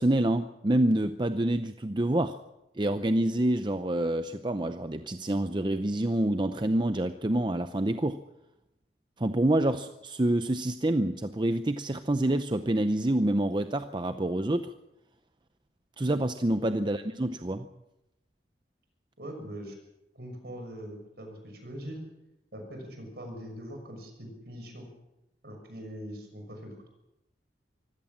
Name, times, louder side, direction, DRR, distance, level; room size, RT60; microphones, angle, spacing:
voice 1, 0.0-2.4 2.8-8.2 9.2-14.7 16.0-17.7, right 1 dB, 25° right, 9 dB, 0.7 m, -27 dB
voice 2, 19.2-19.8 20.1-22.0 22.5-24.9 25.4-26.8, equal, 60° right, 4 dB, 6.4 m, -42 dB
24.5 x 16.0 x 7.4 m, 0.92 s
head